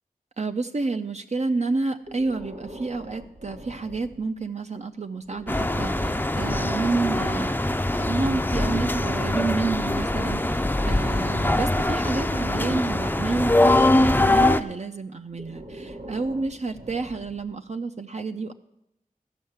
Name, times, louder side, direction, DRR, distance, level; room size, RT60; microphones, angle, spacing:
voice 1, 0.4-7.5 7.9-18.5, right 3 dB, 50° right, 7 dB, 0.5 m, -29 dB
Breathing, 2.0-4.5 5.2-7.6 8.7-11.5 12.1-14.4 15.3-17.6, right 1 dB, 90° right, 1.8 m, -43 dB
sound 1, 5.5-14.6, left 1 dB, 15° left, 0.5 m, -23 dB
13.0 x 5.5 x 8.0 m, 0.86 s
wide cardioid pair, 55°, 15 cm